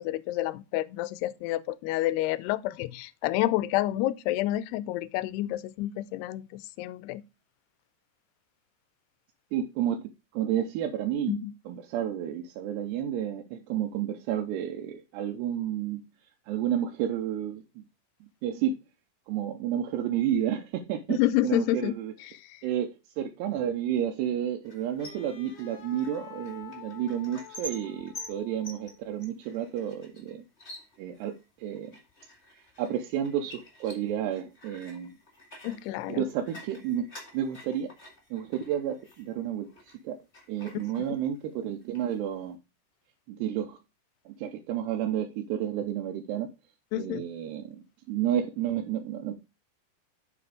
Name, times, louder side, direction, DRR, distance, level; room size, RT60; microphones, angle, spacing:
voice 1, 0.0-7.2 11.3-11.5 21.1-21.9 22.2-22.6 35.6-36.3 40.7-40.8 41.1-41.2 46.9-47.2, left 15 dB, 80° left, 2.6 m, -29 dB
voice 2, 9.5-11.4 11.7-16.0 16.5-17.8 18.2-18.8 19.3-22.1 22.6-30.4 31.0-32.0 32.8-35.2 36.1-37.0 37.3-37.9 38.3-39.7 40.0-40.2 40.5-42.6 43.3-43.8 44.3-46.5 46.9-49.3, right 10 dB, 85° right, 2.9 m, -31 dB
sound 1, 24.6-40.0 40.3-41.5 41.8-42.5, left 1 dB, 30° left, 1.3 m, -49 dB
Wind instrument woodwind instrument, 25.0-29.1, left 11 dB, 55° left, 1.8 m, -48 dB
7.6 x 5.9 x 4.8 m
omnidirectional pair, 4.8 m